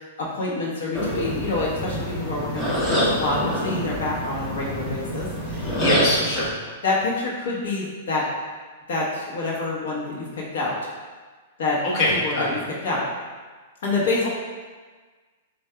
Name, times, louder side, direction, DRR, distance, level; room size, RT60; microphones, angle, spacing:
voice 1, 0.0-5.8 6.8-8.3 8.9-10.8 11.6-11.8 12.2-12.6 12.8-13.0 13.8-14.3, left 3 dB, 75° left, -5 dB, 1.1 m, -27 dB
sound 1, 0.9-6.5, equal, 10° left, 0.7 m, -26 dB
voice 2, 5.8-6.5 11.8-12.5, left 1 dB, 40° left, -7 dB, 1.1 m, -23 dB
7.3 x 2.6 x 2.2 m, 1.4 s
hypercardioid pair, 150°, 0 cm